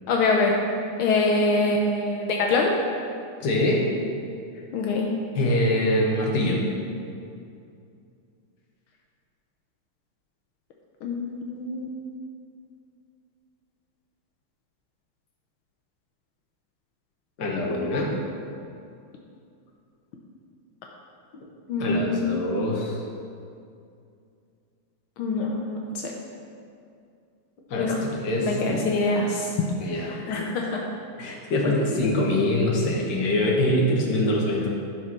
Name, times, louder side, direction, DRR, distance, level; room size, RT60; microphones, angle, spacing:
voice 1, 0.1-0.5 1.0-2.7 4.7-5.1 11.0-12.1 21.7-22.3 25.2-25.8 27.8-27.9 28.4-29.5 30.3-30.8, left 3 dB, 80° left, -1 dB, 1.7 m, -24 dB
voice 2, 3.4-3.9 5.4-6.6 17.4-18.2 21.8-23.0 27.7-28.8 29.8-30.2 31.2-34.7, left 1 dB, 55° left, -2 dB, 1.8 m, -24 dB
11.5 x 4.5 x 6.0 m, 2.4 s
omnidirectional pair, 2.3 m